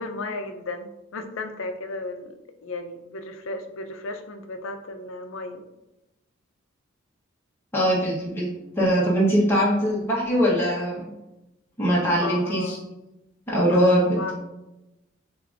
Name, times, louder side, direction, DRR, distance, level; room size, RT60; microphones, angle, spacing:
voice 1, 0.0-5.6 12.2-12.8 13.7-14.3, left 2 dB, 75° left, 7 dB, 0.5 m, -34 dB
voice 2, 7.7-8.4 8.8-11.1 11.8-12.8 13.5-14.3, equal, 10° left, -6 dB, 1.0 m, -21 dB
6.6 x 2.6 x 2.5 m, 0.95 s
head